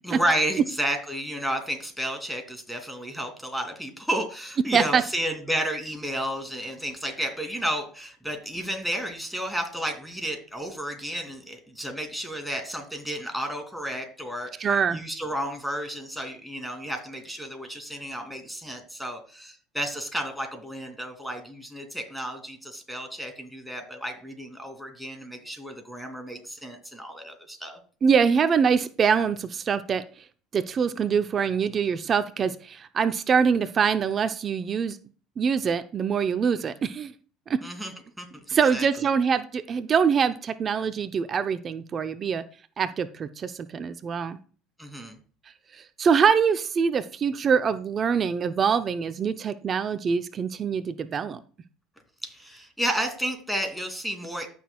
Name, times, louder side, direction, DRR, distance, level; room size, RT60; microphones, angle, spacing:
voice 1, 0.0-27.8 37.6-38.9 44.8-45.2 52.2-54.5, right 1 dB, ahead, 3 dB, 2.8 m, -32 dB
voice 2, 14.6-15.0 28.0-30.0 30.5-35.0 35.4-37.1 37.5-37.6 38.5-42.4 42.8-44.4 45.7-51.4, right 6 dB, 40° right, 11 dB, 0.6 m, -24 dB
15.0 x 6.3 x 2.3 m, 0.40 s
hypercardioid pair, 75°, 0 cm